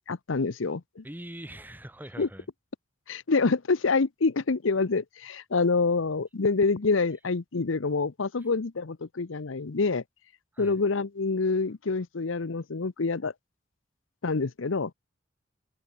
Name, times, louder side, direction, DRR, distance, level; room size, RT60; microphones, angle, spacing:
voice 1, 0.1-1.0 2.2-2.3 3.1-10.0 10.6-13.3 14.2-14.9, left 4 dB, 75° left, 0.8 m, -26 dB
voice 2, 1.0-2.5 10.5-10.8, right 1 dB, 10° right, 3.3 m, -42 dB
head